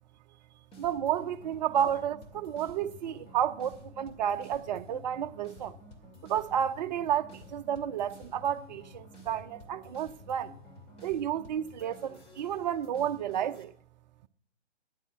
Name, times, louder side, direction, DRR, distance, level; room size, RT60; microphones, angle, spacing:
sound 1, 0.7-13.6, left 1 dB, 20° left, 2.3 m, -51 dB
voice 1, 0.8-5.7 6.2-10.5 11.0-13.7, right 9 dB, 40° right, 0.7 m, -31 dB
13.5 x 10.5 x 6.2 m
hypercardioid pair, 135°, 35 cm